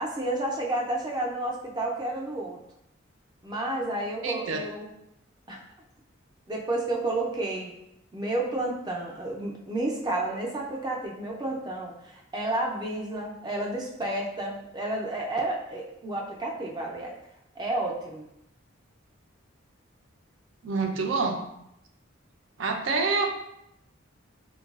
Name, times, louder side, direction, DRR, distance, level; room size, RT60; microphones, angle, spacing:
voice 1, 0.0-2.6 3.4-4.9 5.5-5.6 6.5-7.7 8.1-17.1 17.6-18.3, right 2 dB, 20° right, -1 dB, 0.5 m, -31 dB
voice 2, 4.2-4.6 20.6-21.4 22.6-23.3, right 4 dB, 70° right, 3 dB, 0.5 m, -27 dB
4.6 x 2.3 x 2.3 m, 0.80 s
head